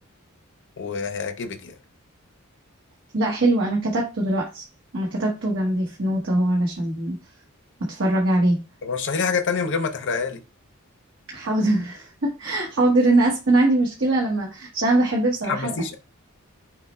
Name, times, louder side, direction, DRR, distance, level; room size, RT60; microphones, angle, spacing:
voice 1, 0.8-1.7 8.8-10.4 15.4-16.0, left 5 dB, 55° left, 0.6 m, -26 dB
voice 2, 3.1-4.6 4.9-7.1 7.9-8.6 11.3-16.0, right 2 dB, 60° right, 1.0 m, -22 dB
5.8 x 2.1 x 4.2 m
head